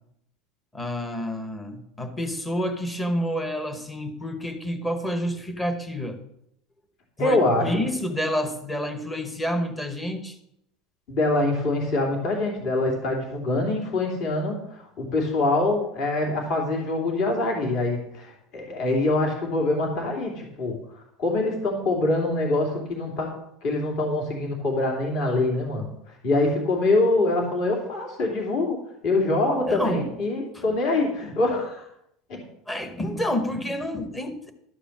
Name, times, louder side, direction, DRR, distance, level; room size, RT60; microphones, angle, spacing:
voice 1, 0.7-6.2 7.2-10.4 29.7-30.1 30.5-30.6 32.7-34.5, equal, 10° left, 8 dB, 1.0 m, -29 dB
voice 2, 7.2-7.7 11.1-20.8 21.2-23.3 23.6-25.9 26.2-31.9 32.3-32.4, left 2 dB, 45° left, 0 dB, 2.9 m, -24 dB
12.5 x 4.9 x 7.2 m, 0.77 s
cardioid pair, 170°, 0 cm